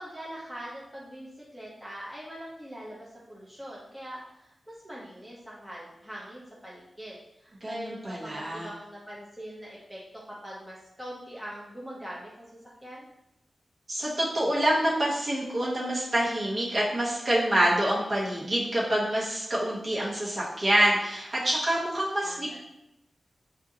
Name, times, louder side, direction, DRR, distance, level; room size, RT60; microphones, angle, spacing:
voice 1, 0.0-13.1 22.2-22.6, equal, 5° right, -6 dB, 0.8 m, -42 dB
voice 2, 7.6-8.7 13.9-22.6, right 1 dB, 40° right, -5 dB, 1.1 m, -26 dB
6.1 x 2.6 x 2.7 m, 0.85 s
wide cardioid pair, 155°, 0 cm